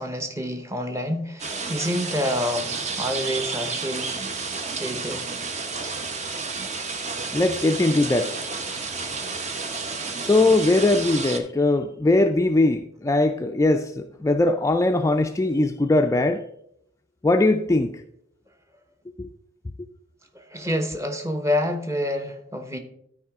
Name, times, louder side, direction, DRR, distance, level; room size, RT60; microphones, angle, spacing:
voice 1, 0.0-4.4 4.8-5.3 9.1-9.5 20.3-22.8, left 1 dB, 15° right, 0.9 m, -28 dB
sound 1, 1.4-11.4, right 4 dB, 40° right, 0.8 m, -31 dB
voice 2, 7.3-8.4 10.2-16.4 17.2-18.0 19.2-19.3, left 2 dB, 15° left, 0.3 m, -21 dB
12.0 x 4.8 x 3.6 m
head